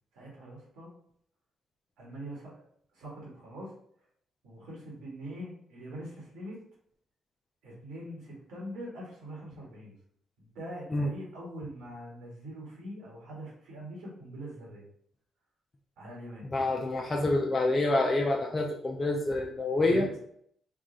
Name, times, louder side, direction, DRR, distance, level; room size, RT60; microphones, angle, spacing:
voice 1, 0.1-0.9 2.0-2.6 2.9-3.7 4.4-6.6 7.6-9.9 10.4-14.8 16.0-16.5 19.8-20.2, right 1 dB, 85° right, -3 dB, 1.6 m, -43 dB
voice 2, 16.5-20.1, left 2 dB, 30° left, 0 dB, 0.5 m, -27 dB
3.7 x 2.4 x 3.8 m, 0.67 s
cardioid pair, 90°, 0 cm